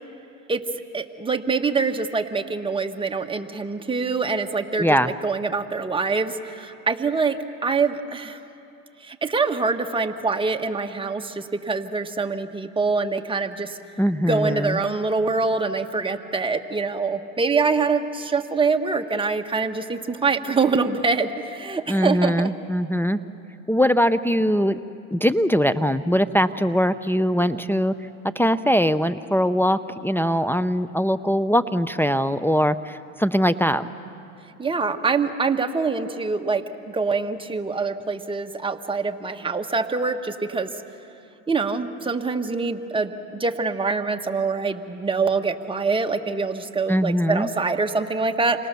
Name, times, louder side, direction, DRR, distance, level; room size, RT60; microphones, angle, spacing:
voice 1, 0.9-8.4 9.0-13.8 14.2-22.5 34.6-40.7 41.5-48.7, right 4 dB, 15° right, 5 dB, 1.6 m, -25 dB
voice 2, 4.8-5.1 14.0-14.8 21.9-23.2 23.7-24.8 25.1-27.9 28.4-33.9 46.9-47.5, equal, 5° left, 9 dB, 0.7 m, -21 dB
29.5 x 25.0 x 7.0 m, 2.7 s
hypercardioid pair, 85°, 39 cm